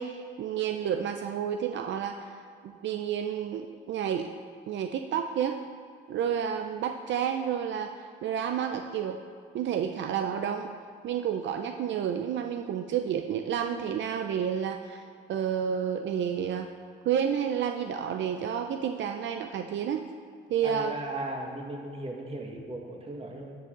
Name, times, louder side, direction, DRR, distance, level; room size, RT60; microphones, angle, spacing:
voice 1, 0.0-4.3 4.7-5.6 6.1-9.2 9.5-10.7 11.0-15.0 15.3-16.7 17.0-20.1 20.5-21.0, right 8 dB, 65° right, 5 dB, 0.6 m, -30 dB
voice 2, 20.6-23.6, right 1 dB, 30° right, 1 dB, 1.9 m, -37 dB
13.0 x 7.6 x 3.9 m, 2.2 s
cardioid pair, 90°, 20 cm